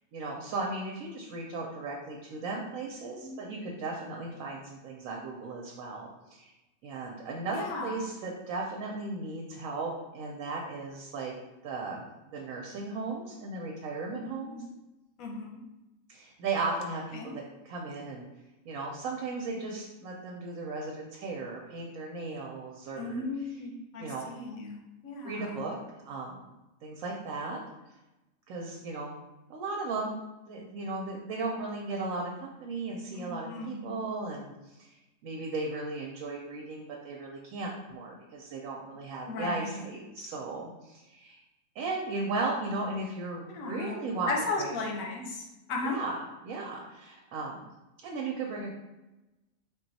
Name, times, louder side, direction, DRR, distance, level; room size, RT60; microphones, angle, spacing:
voice 1, 0.1-6.5 6.8-11.3 11.6-14.6 16.1-18.2 18.6-23.2 24.0-24.3 25.2-25.7 26.1-26.4 26.8-27.6 28.5-29.1 29.5-35.0 35.2-41.4 41.7-44.3 44.6-44.7 45.8-46.2 46.4-47.6 48.0-48.7, right 3 dB, 90° right, -1 dB, 1.1 m, -36 dB
voice 2, 7.5-8.1 14.2-14.6 15.2-15.6 17.1-17.3 23.0-25.6 33.1-34.0 39.2-39.9 40.2-40.3 43.5-44.0 44.3-46.0, left 3 dB, 90° left, 0 dB, 1.1 m, -36 dB
3.8 x 2.3 x 3.9 m, 1.0 s
omnidirectional pair, 1.4 m